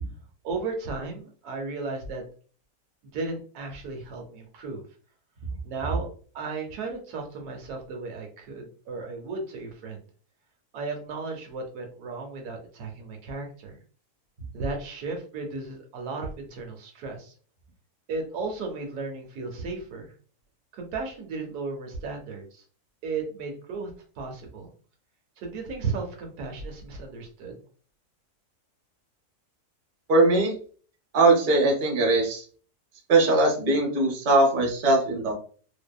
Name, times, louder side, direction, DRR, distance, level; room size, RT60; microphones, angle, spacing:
voice 1, 0.4-2.2 3.0-4.8 5.6-6.1 6.3-10.1 10.7-13.8 14.5-17.3 18.1-20.1 20.7-22.6 23.0-23.9 24.2-24.7 25.4-27.6, right 3 dB, 80° right, 2 dB, 1.2 m, -35 dB
voice 2, 30.1-30.5 31.1-32.4 33.1-35.3, right 2 dB, 45° right, 0 dB, 0.6 m, -20 dB
2.6 x 2.2 x 2.2 m, 0.42 s
omnidirectional pair, 1.6 m